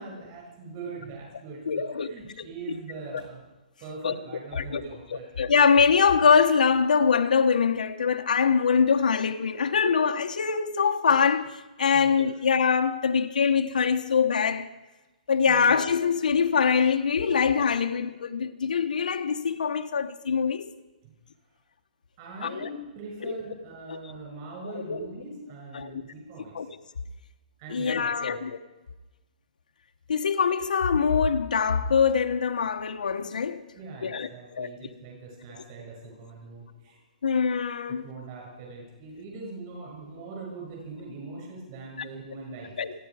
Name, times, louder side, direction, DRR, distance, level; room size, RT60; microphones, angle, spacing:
voice 1, 0.0-3.4 3.8-5.2 11.9-12.1 15.5-15.8 21.0-21.1 22.2-26.5 27.6-28.4 33.7-37.0 37.9-42.7, right 3 dB, 25° right, 6.2 m, -42 dB
voice 2, 1.7-2.1 2.4-2.5 4.0-4.1 4.5-4.8 5.1-14.7 15.3-20.7 22.4-22.7 23.2-23.3 23.9-24.0 24.6-25.0 25.7-26.0 26.5-26.7 27.7-28.6 30.1-33.7 34.0-34.3 34.6-34.7 37.2-38.1 42.8-42.9, left 6 dB, 70° left, 1.0 m, -23 dB
27.5 x 10.5 x 4.8 m
hypercardioid pair, 175°, 5 cm